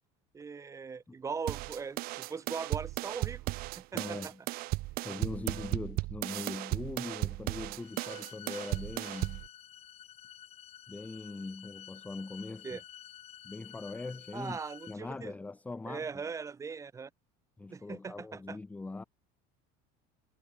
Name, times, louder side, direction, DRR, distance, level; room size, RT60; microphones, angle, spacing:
voice 1, 0.3-3.4 3.8-4.3 12.6-12.8 14.3-15.3 15.9-17.1 17.7-18.6, right 5 dB, 15° right, 2.5 m, -40 dB
sound 1, 1.5-9.5, right 20 dB, 50° right, 1.5 m, -35 dB
voice 2, 3.9-4.4 5.0-9.4 10.9-12.8 13.4-14.6 14.9-16.2 17.6-19.0, left 3 dB, 5° left, 1.0 m, -41 dB
sound 2, 7.8-14.9, left 11 dB, 30° left, 3.5 m, -51 dB
cardioid pair, 175°, 20 cm